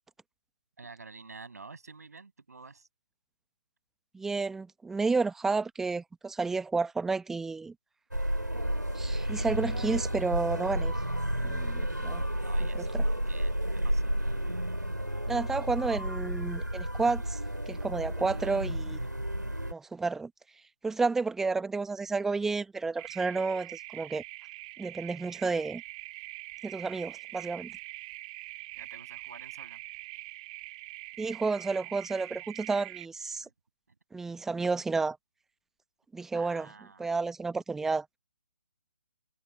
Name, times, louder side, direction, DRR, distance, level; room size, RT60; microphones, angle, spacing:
voice 1, 0.8-2.9 12.4-14.2 18.4-18.7 28.7-29.8 33.4-33.5 36.3-37.1, right 4 dB, 60° right, 7.7 m, -49 dB
voice 2, 4.1-7.7 8.9-10.9 11.4-12.2 12.8-13.0 15.3-17.4 17.7-19.0 19.7-20.3 20.8-24.2 24.8-25.8 26.6-27.8 31.2-33.5 34.1-35.2 36.1-36.7 37.0-38.1, right 4 dB, 5° right, 1.4 m, -31 dB
sound 1, 8.1-19.7, right 1 dB, 85° right, 3.7 m, -31 dB
sound 2, 23.0-33.1, right 22 dB, 20° right, 2.2 m, -44 dB
figure-of-eight pair, 140°, 10 cm